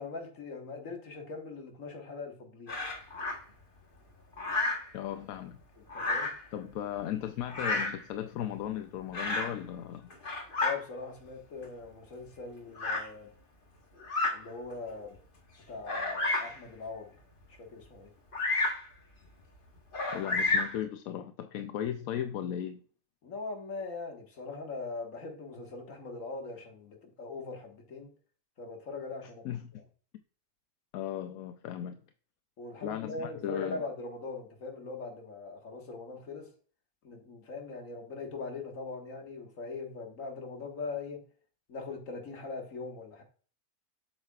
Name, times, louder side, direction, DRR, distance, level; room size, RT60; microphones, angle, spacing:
voice 1, 0.0-2.8 5.8-6.5 10.6-13.3 14.3-15.2 15.7-17.2 17.5-18.1 23.2-28.1 28.6-29.8 32.6-36.5 37.0-41.2 41.7-43.2, left 3 dB, 70° left, 1.9 m, -41 dB
Bird vocalization bird call bird song, 2.7-3.4 4.4-4.9 5.9-6.4 7.5-8.0 9.1-9.6 10.1-10.8 11.6-11.7 12.8-13.1 14.0-14.4 15.0-15.1 15.8-16.6 18.3-18.8 19.9-20.8, left 2 dB, 40° left, 1.4 m, -31 dB
voice 2, 4.9-5.6 6.5-10.1 20.1-22.8 29.4-29.8 30.9-32.0 32.8-33.8, left 10 dB, 90° left, 1.0 m, -36 dB
8.0 x 6.5 x 2.3 m
omnidirectional pair, 1.4 m